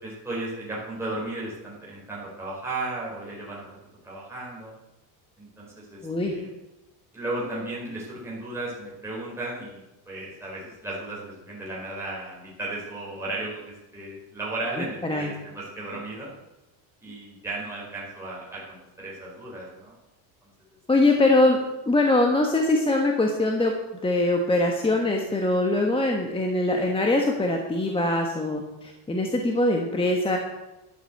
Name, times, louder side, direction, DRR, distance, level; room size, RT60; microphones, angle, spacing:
voice 1, 0.0-3.8 4.0-4.7 5.4-6.5 7.1-16.3 17.0-19.9 20.4-20.5, right 2 dB, 5° right, -6 dB, 4.7 m, -35 dB
voice 2, 6.0-6.3 15.0-15.3 20.9-21.6 21.9-23.7 24.0-30.4, left 2 dB, 10° left, 2 dB, 1.4 m, -22 dB
12.0 x 8.4 x 7.9 m, 1.0 s
cardioid pair, 145°, 47 cm